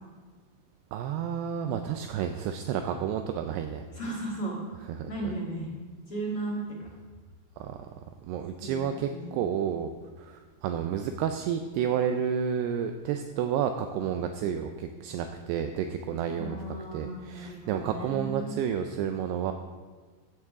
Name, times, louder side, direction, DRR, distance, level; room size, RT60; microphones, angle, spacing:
voice 1, 0.9-3.8 4.9-5.1 7.6-7.8 8.2-9.9 10.2-16.6 16.9-19.5, right 8 dB, 85° right, 7 dB, 2.4 m, -30 dB
voice 2, 3.9-4.8 5.1-5.7 6.1-6.6 8.6-9.4 16.4-18.6, right 2 dB, 45° left, -4 dB, 1.9 m, -35 dB
15.5 x 11.0 x 3.7 m, 1.4 s
omnidirectional pair, 5.3 m